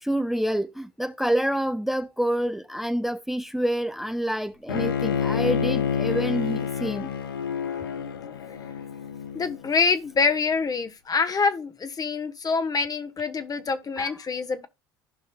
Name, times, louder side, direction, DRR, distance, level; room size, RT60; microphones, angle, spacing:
voice 1, 0.0-7.1 14.0-14.1, equal, ahead, 0.6 m, -27 dB
Bowed string instrument, 4.7-9.8, left 7 dB, 85° left, 0.8 m, -28 dB
voice 2, 9.3-14.7, left 4 dB, 30° left, 1.2 m, -25 dB
15.0 x 5.5 x 2.3 m
hypercardioid pair, 65°, 12 cm